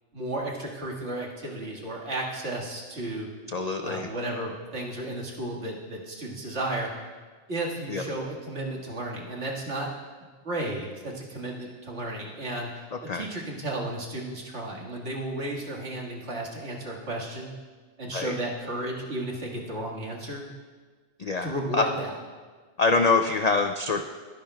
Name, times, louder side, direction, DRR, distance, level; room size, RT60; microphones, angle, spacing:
voice 1, 0.1-3.3 3.8-6.9 7.5-9.9 10.2-12.7 13.0-17.5 18.0-20.5 21.4-22.1, right 1 dB, 60° right, -3 dB, 2.1 m, -33 dB
voice 2, 3.5-4.1 7.9-8.0 13.1-13.3 18.1-18.3 21.2-21.9 22.8-24.0, left 4 dB, 60° left, 5 dB, 0.4 m, -25 dB
22.0 x 10.0 x 2.3 m, 1.4 s
omnidirectional pair, 1.3 m